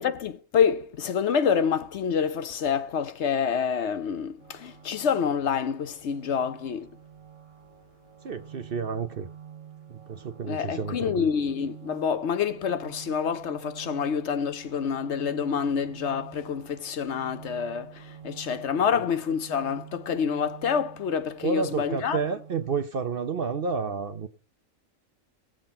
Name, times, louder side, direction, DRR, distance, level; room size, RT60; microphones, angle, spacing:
voice 1, 0.0-6.9 10.5-22.2, left 7 dB, 60° left, 0.9 m, -27 dB
sound 1, 4.4-22.8, right 9 dB, 25° right, 2.4 m, -47 dB
voice 2, 8.2-9.3 9.9-11.3 21.4-24.3, right 5 dB, 50° right, 0.8 m, -30 dB
18.5 x 7.6 x 4.2 m
omnidirectional pair, 1.4 m